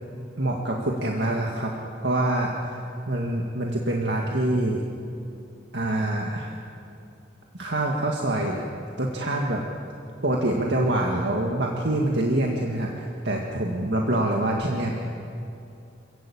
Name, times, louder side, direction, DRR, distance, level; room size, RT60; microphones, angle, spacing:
voice 1, 0.1-1.7 2.0-4.8 5.7-6.6 7.5-8.6 9.0-9.6 10.2-15.1, right 1 dB, 65° right, -1 dB, 2.0 m, -25 dB
27.5 x 15.5 x 8.8 m, 2.6 s
head